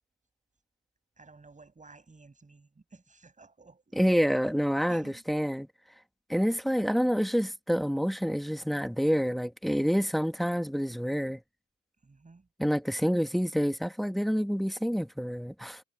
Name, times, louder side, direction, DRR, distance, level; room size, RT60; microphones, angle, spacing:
voice 1, 1.2-4.0 4.9-5.2 12.0-12.5, right 3 dB, 25° right, 7.9 m, -54 dB
voice 2, 3.9-5.7 6.3-11.4 12.6-15.8, equal, ahead, 1.8 m, -28 dB
cardioid pair, 90°, 30 cm